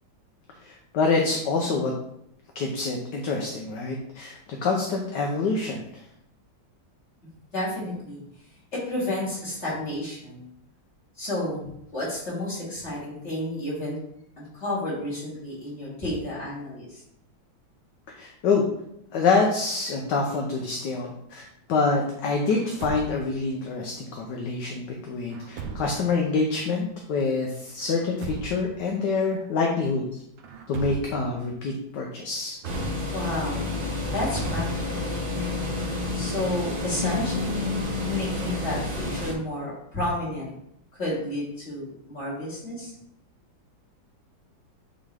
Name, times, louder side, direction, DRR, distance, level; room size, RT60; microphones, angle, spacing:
voice 1, 0.6-1.9 2.5-5.9 18.2-18.6 19.1-30.0 30.7-32.6, left 4 dB, 70° left, 0 dB, 1.4 m, -26 dB
voice 2, 7.5-8.2 8.7-10.5 11.2-11.6 11.9-14.0 14.4-17.0 33.1-33.6 34.0-35.1 36.1-40.5 40.9-42.9, left 1 dB, 35° left, -7 dB, 2.8 m, -31 dB
Truck, 22.5-23.5 25.3-26.2 27.8-28.8 30.4-31.4 32.6-33.4 34.3-35.2, right 5 dB, 75° right, 1.4 m, -37 dB
sound 1, 32.6-39.3, left 2 dB, 30° right, 1.3 m, -29 dB
9.4 x 3.6 x 3.4 m, 0.75 s
omnidirectional pair, 2.1 m